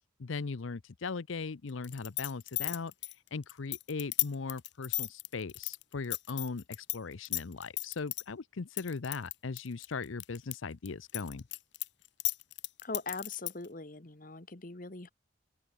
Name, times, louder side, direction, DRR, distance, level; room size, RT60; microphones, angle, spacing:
voice 1, 0.2-11.5, left 4 dB, 80° left, 0.7 m, -39 dB
sound 1, 1.8-7.0 7.2-8.2 8.8-10.5 10.9-13.7, left 20 dB, 60° left, 1.1 m, -34 dB
voice 2, 12.8-15.1, left 3 dB, 45° left, 1.4 m, -41 dB
open air
head